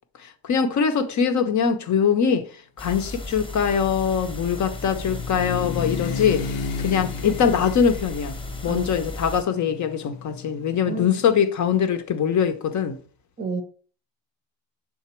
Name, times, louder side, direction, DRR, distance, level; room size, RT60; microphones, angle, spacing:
voice 1, 0.2-2.5 2.8-6.4 6.8-8.4 8.6-13.0, left 7 dB, 40° left, 0.7 m, -22 dB
sound 1, 2.8-9.4, left 1 dB, 10° left, 1.0 m, -35 dB
sound 2, 3.2-11.1, left 6 dB, 85° left, 0.7 m, -34 dB
voice 2, 10.9-11.2 13.4-13.6, right 4 dB, 20° right, 0.6 m, -30 dB
5.9 x 3.9 x 4.4 m
cardioid pair, 140°, 45 cm